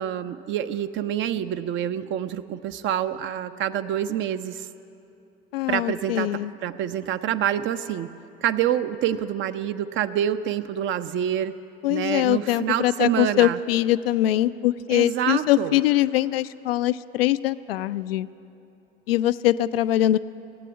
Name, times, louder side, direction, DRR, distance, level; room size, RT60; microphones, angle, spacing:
voice 1, 0.0-4.7 5.7-8.1 8.4-11.5 11.9-13.6 14.9-15.8, right 10 dB, 40° right, 12 dB, 0.6 m, -27 dB
voice 2, 5.5-6.5 11.8-18.3 19.1-20.2, left 14 dB, 70° left, 14 dB, 0.4 m, -22 dB
18.0 x 8.3 x 9.4 m, 2.8 s
figure-of-eight pair, 60°, 31 cm